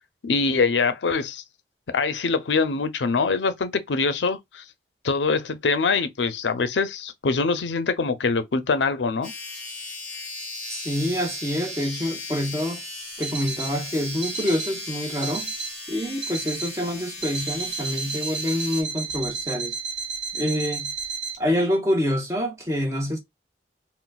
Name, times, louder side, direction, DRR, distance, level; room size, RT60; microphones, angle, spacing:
voice 1, 0.2-1.4 1.9-4.6 5.0-9.3, left 4 dB, 90° left, 0.6 m, -24 dB
sound 1, 9.2-18.8, left 2 dB, 10° left, 1.0 m, -36 dB
voice 2, 10.7-12.8 13.2-15.5 15.9-19.8 20.3-20.9 21.4-23.2, equal, 15° right, 0.8 m, -26 dB
Alarm, 13.2-13.8 14.2-14.8 15.2-15.8 16.2-16.8 17.2-21.4, right 5 dB, 45° right, 1.3 m, -32 dB
3.9 x 2.2 x 2.3 m
head